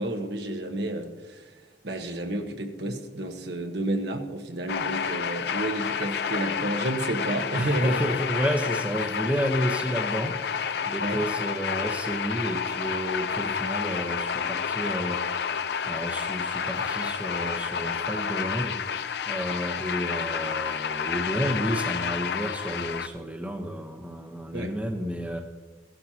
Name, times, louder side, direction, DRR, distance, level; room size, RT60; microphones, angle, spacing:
voice 1, 0.0-1.6 1.8-8.0 11.0-11.2 24.5-24.7, right 1 dB, 65° right, 4 dB, 1.2 m, -30 dB
sound 1, 4.7-23.1, left 6 dB, 65° left, 0.5 m, -30 dB
voice 2, 7.5-18.8 19.3-25.4, equal, 10° right, 2 dB, 0.9 m, -31 dB
16.0 x 12.0 x 2.9 m, 1.2 s
head